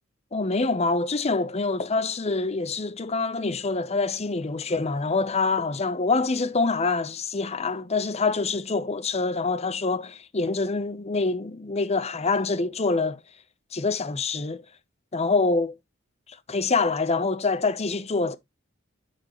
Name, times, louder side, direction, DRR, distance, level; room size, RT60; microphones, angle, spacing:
voice 1, 0.3-13.2 13.7-14.6 15.1-15.8 16.5-18.4, left 3 dB, 35° left, 0.7 m, -25 dB
9.8 x 4.4 x 3.0 m
head